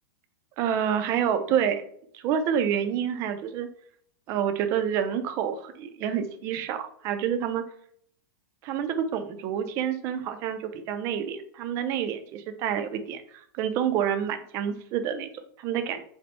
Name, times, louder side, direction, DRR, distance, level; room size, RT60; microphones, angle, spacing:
voice 1, 0.6-1.8 2.1-3.7 4.3-7.6 8.6-16.0, right 8 dB, 25° right, 8 dB, 0.3 m, -28 dB
4.2 x 2.0 x 4.3 m, 0.63 s
supercardioid pair, 170°, 12 cm